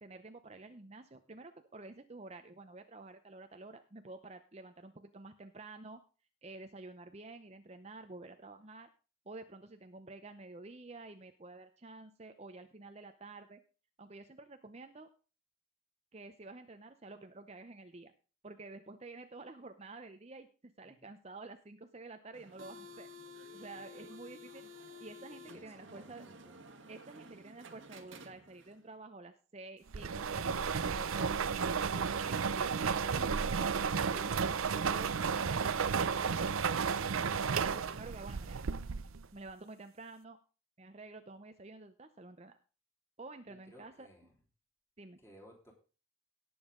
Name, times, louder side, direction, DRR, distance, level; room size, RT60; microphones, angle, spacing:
voice 1, 0.0-6.0 6.4-8.9 9.3-13.6 14.0-15.1 16.1-18.1 18.4-23.1 23.5-24.6 25.0-26.2 26.9-33.7 34.1-36.9 37.5-38.6 39.3-40.4 40.8-42.6 43.2-44.1 45.0-45.2, right 3 dB, 30° right, 7 dB, 0.7 m, -50 dB
sound 1, 22.3-28.8, left 1 dB, 70° right, 1.5 m, -52 dB
voice 2, 25.4-26.6 43.5-44.3 45.2-45.7, equal, 10° left, -1 dB, 3.2 m, -59 dB
sound 2, 29.9-39.2, right 6 dB, 85° right, 0.6 m, -33 dB
18.0 x 7.2 x 3.7 m, 0.35 s
head